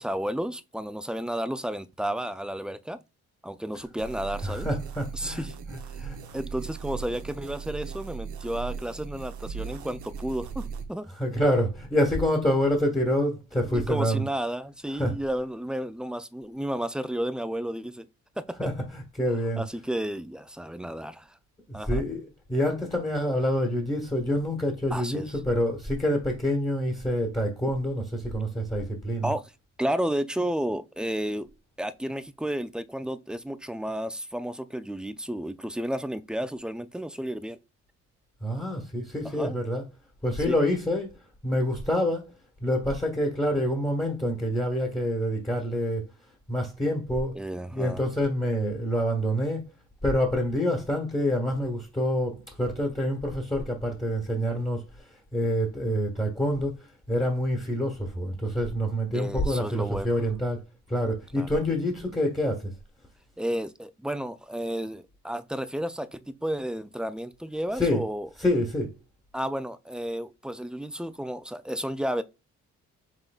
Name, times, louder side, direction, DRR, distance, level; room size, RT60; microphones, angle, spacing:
voice 1, 0.0-3.0 3.4-4.7 5.1-5.6 5.9-6.1 6.3-11.1 13.6-18.1 18.4-18.6 19.6-21.4 21.7-22.0 24.9-25.3 29.2-29.4 29.8-31.5 31.8-37.6 39.2-39.6 40.5-40.6 47.3-48.0 59.1-60.1 61.4-61.5 63.4-68.3 69.3-72.2, right 1 dB, 5° right, 0.3 m, -32 dB
sound 1, 4.0-10.9, right 6 dB, 75° right, 0.9 m, -38 dB
voice 2, 4.4-5.4 5.7-6.2 11.2-14.2 14.9-15.1 18.6-19.6 21.9-29.3 38.4-39.8 40.2-41.1 41.4-42.3 42.6-46.1 46.5-47.4 47.7-49.7 50.0-60.6 60.9-62.7 67.7-68.0 68.4-68.9, equal, 15° left, 1.4 m, -27 dB
6.0 x 3.7 x 2.4 m
cardioid pair, 90°, 30 cm